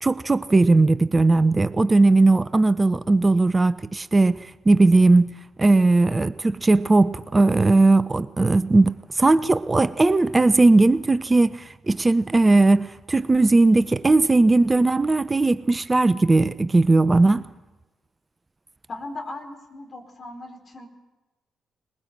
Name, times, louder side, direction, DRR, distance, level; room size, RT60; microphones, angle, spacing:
voice 1, 0.0-5.3 5.6-17.4, right 2 dB, 25° right, 0.7 m, -18 dB
voice 2, 18.9-20.9, left 2 dB, 45° left, 4.6 m, -37 dB
21.5 x 21.0 x 7.7 m
hypercardioid pair, 40°, 0 cm